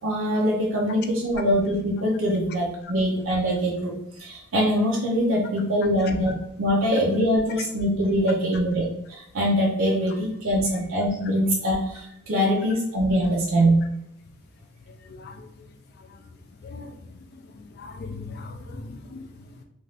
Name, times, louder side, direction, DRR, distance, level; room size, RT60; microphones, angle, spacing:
voice 1, 0.0-13.9, equal, 65° right, -3 dB, 0.5 m, -23 dB
voice 2, 14.9-15.7 16.0-16.2 16.6-17.0 17.3-19.6, left 3 dB, 50° left, 4 dB, 0.3 m, -40 dB
2.5 x 2.4 x 3.3 m, 0.77 s
head